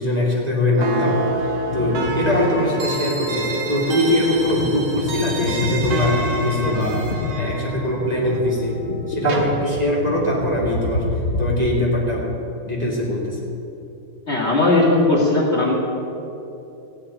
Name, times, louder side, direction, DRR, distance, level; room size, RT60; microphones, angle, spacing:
voice 1, 0.0-7.1 7.4-11.1 11.4-12.3 12.6-13.4, left 1 dB, 20° right, -5 dB, 2.4 m, -22 dB
sound 1, 0.8-9.4, right 2 dB, 75° right, 2.5 m, -27 dB
sound 2, 1.7-2.6 3.0-3.1 3.8-11.7, left 2 dB, 65° left, 0.6 m, -28 dB
voice 2, 14.3-15.7, left 2 dB, 30° left, -4 dB, 2.3 m, -17 dB
16.5 x 6.1 x 9.9 m, 3.0 s
omnidirectional pair, 2.3 m